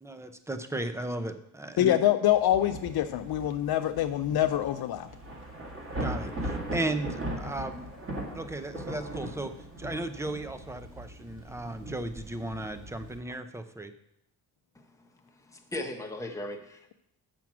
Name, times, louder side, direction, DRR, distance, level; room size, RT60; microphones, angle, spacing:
voice 1, 0.0-2.0 6.0-7.9 8.3-9.5 9.8-13.9, right 2 dB, 5° right, 9 dB, 0.5 m, -35 dB
voice 2, 1.8-5.1, left 12 dB, 70° left, 8 dB, 0.5 m, -25 dB
Thunder / Rain, 2.3-13.2, right 1 dB, 30° right, 2.2 m, -39 dB
voice 3, 15.2-16.9, left 1 dB, 10° left, 1 dB, 1.1 m, -38 dB
7.4 x 5.9 x 6.0 m, 0.79 s
cardioid pair, 125°, 39 cm